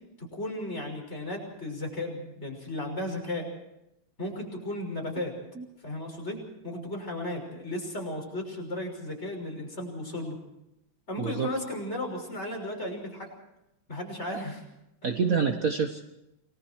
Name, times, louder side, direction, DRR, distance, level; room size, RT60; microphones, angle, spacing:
voice 1, 0.2-3.5 4.2-5.3 5.8-6.4 6.6-10.4 11.1-13.3 13.9-14.6, left 1 dB, 30° left, 1 dB, 6.4 m, -35 dB
voice 2, 11.2-11.5 15.0-16.0, right 5 dB, 45° right, 5 dB, 1.5 m, -27 dB
29.0 x 21.0 x 4.7 m, 0.88 s
omnidirectional pair, 2.4 m